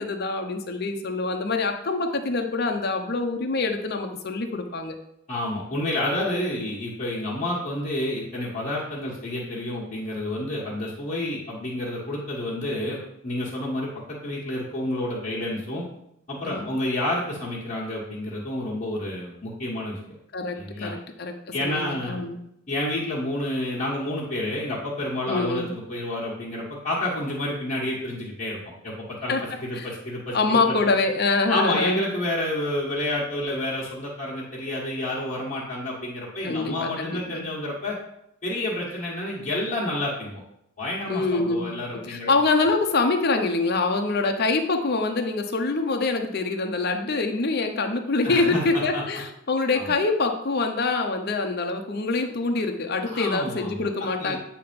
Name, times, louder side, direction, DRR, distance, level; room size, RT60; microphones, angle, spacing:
voice 1, 0.0-5.0 16.4-16.7 20.3-22.3 25.3-25.7 29.3-29.4 29.7-29.9 30.3-32.0 36.4-37.5 41.1-41.7 42.1-54.4, left 3 dB, 50° left, 4 dB, 0.7 m, -25 dB
voice 2, 5.3-15.8 16.3-20.0 20.5-20.9 21.5-22.2 22.7-28.6 28.8-30.9 31.5-38.0 38.4-40.4 40.8-42.3 48.2-49.0 49.7-49.9 53.0-54.4, left 1 dB, 35° left, -9 dB, 1.5 m, -29 dB
8.4 x 2.9 x 5.2 m, 0.78 s
head